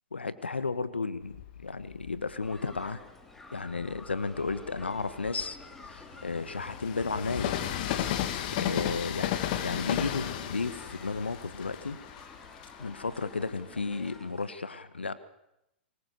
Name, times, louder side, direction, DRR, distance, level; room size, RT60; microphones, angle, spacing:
voice 1, 0.1-3.0 3.5-5.6 5.8-7.8 8.5-9.3 9.6-12.0 12.8-15.1, left 4 dB, 80° left, 14 dB, 1.5 m, -33 dB
Train, 1.3-2.9 3.6-14.2, left 11 dB, 50° left, 2.6 m, -35 dB
sound 1, 2.4-14.5, left 2 dB, 5° left, 3.9 m, -51 dB
24.0 x 21.0 x 6.9 m, 0.87 s
figure-of-eight pair, 105°, 6 cm